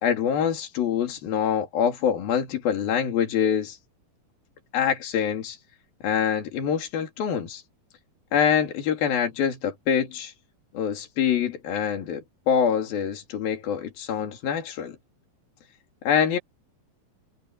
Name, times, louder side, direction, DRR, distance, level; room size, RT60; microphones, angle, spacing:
voice 1, 0.0-3.8 4.7-5.6 6.0-7.6 8.3-10.3 10.7-15.0 16.1-16.4, left 8 dB, 80° left, 4.6 m, -25 dB
omnidirectional pair, 4.2 m